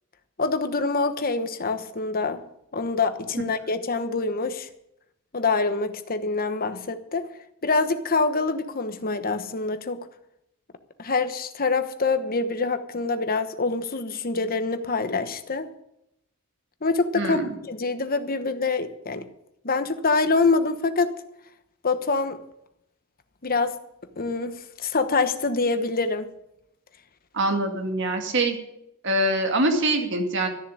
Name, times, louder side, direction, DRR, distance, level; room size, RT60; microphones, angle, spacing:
voice 1, 0.4-2.4 2.7-4.7 5.3-7.2 7.6-10.0 11.0-15.7 16.8-17.4 17.7-19.2 19.6-21.1 21.8-22.4 23.4-23.7 24.2-26.3, left 3 dB, 40° left, 9 dB, 1.1 m, -25 dB
voice 2, 17.1-17.5 27.3-28.6 29.0-30.5, right 1 dB, 55° right, 4 dB, 2.2 m, -24 dB
13.5 x 6.9 x 10.0 m, 0.81 s
head